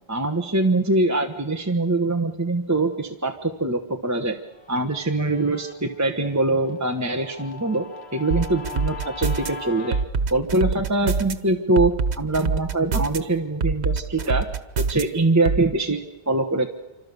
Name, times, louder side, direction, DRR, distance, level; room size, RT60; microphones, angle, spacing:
voice 1, 0.1-4.4 4.7-7.9 8.1-10.0 10.3-14.4 14.8-16.7, right 2 dB, 15° right, 4 dB, 1.2 m, -23 dB
Guitar, 4.5-10.0, left 4 dB, 75° left, 1.9 m, -40 dB
sound 1, 8.3-9.5 9.9-11.3 11.8-13.2 13.6-15.0 15.5-15.6, right 4 dB, 90° right, 1.4 m, -24 dB
27.5 x 25.5 x 7.0 m, 1.2 s
omnidirectional pair, 1.1 m